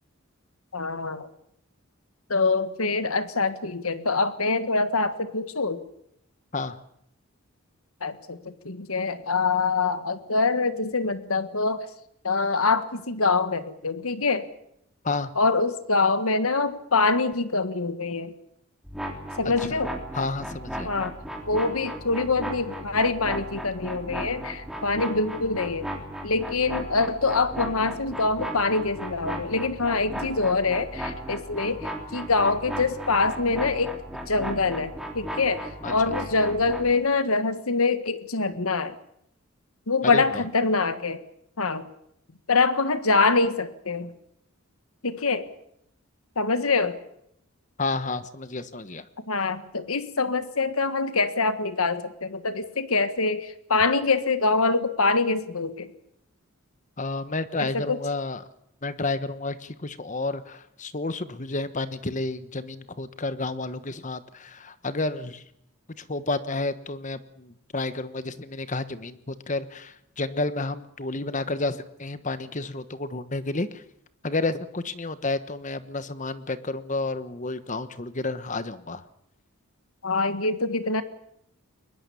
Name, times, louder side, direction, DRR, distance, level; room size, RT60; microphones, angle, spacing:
voice 1, 0.7-1.3 2.3-5.8 8.0-11.8 12.2-14.5 15.4-18.3 19.4-19.9 20.8-21.1 21.5-25.9 26.2-34.0 34.3-38.9 39.9-41.2 41.6-41.9 42.5-44.1 45.0-45.5 46.3-47.0 49.3-55.9 57.6-58.0 80.0-81.0, left 3 dB, 80° left, 11 dB, 1.6 m, -25 dB
sound 1, 18.8-36.9, equal, ahead, 3.3 m, -36 dB
voice 2, 20.1-20.9 35.8-35.9 40.1-40.4 47.8-49.0 57.0-58.4 58.8-65.4 66.0-73.8 74.2-79.0, left 3 dB, 35° left, 12 dB, 1.2 m, -31 dB
22.5 x 21.0 x 7.1 m, 0.73 s
head